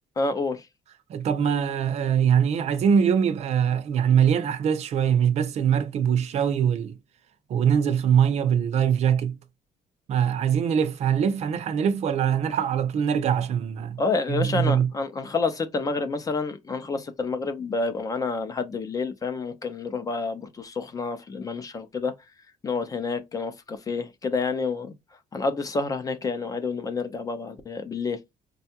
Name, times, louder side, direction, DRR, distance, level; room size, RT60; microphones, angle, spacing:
voice 1, 0.2-0.6 14.0-22.1 22.6-24.9 25.3-28.2, left 4 dB, 25° left, 0.5 m, -28 dB
voice 2, 1.1-7.0 7.5-9.4 10.1-14.0 14.3-14.9, right 8 dB, 50° right, 0.6 m, -23 dB
5.3 x 2.3 x 2.7 m
cardioid pair, 170°, 14 cm